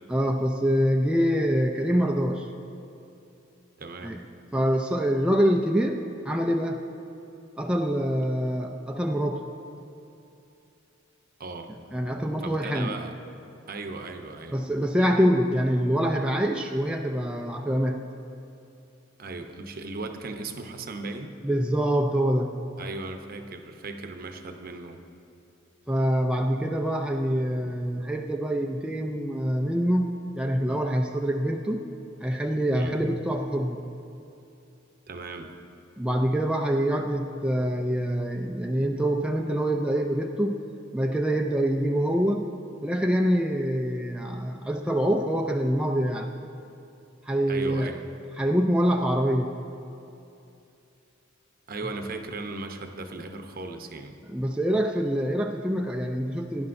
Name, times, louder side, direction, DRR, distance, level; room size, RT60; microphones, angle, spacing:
voice 1, 0.1-2.5 4.0-4.2 4.5-6.8 7.6-9.4 11.9-13.0 14.5-18.1 21.4-22.6 25.9-31.9 32.2-33.8 36.0-40.6 40.9-42.5 42.8-46.3 47.3-47.9 48.4-49.6 54.3-56.7, equal, 5° right, 2 dB, 0.4 m, -25 dB
voice 2, 3.8-4.2 11.4-11.7 12.4-13.2 13.7-14.6 19.2-21.4 22.8-25.0 32.8-33.0 35.1-35.5 47.5-48.1 51.7-54.2, right 3 dB, 50° right, 5 dB, 0.7 m, -37 dB
17.0 x 10.5 x 2.6 m, 2.7 s
head